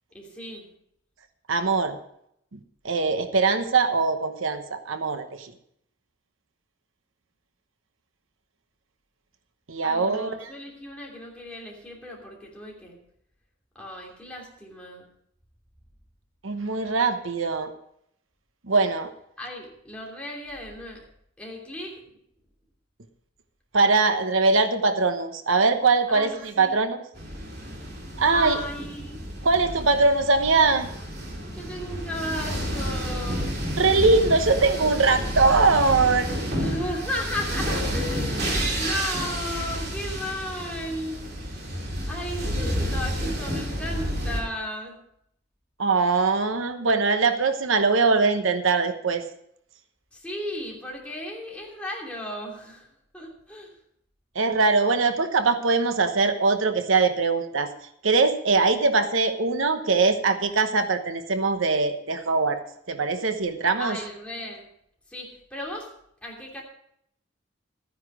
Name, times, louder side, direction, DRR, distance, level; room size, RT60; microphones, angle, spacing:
voice 1, 0.1-0.7 9.8-13.0 13.7-15.1 19.4-21.0 21.4-22.1 26.1-26.8 28.3-29.4 31.5-33.6 36.5-41.3 42.1-45.0 50.1-53.8 63.8-64.7 65.1-65.9 66.2-66.6, left 1 dB, 5° left, -3 dB, 2.9 m, -35 dB
voice 2, 1.5-2.0 2.5-2.6 2.8-5.5 9.7-10.5 16.4-17.7 18.7-19.1 23.7-27.0 28.2-28.6 29.4-30.9 33.8-36.3 45.8-49.2 54.3-57.7 58.0-62.6 62.9-64.0, right 4 dB, 85° right, 9 dB, 1.0 m, -22 dB
sound 1, 27.1-44.4, equal, 55° right, 2.7 m, -30 dB
13.5 x 9.7 x 4.8 m, 0.72 s
head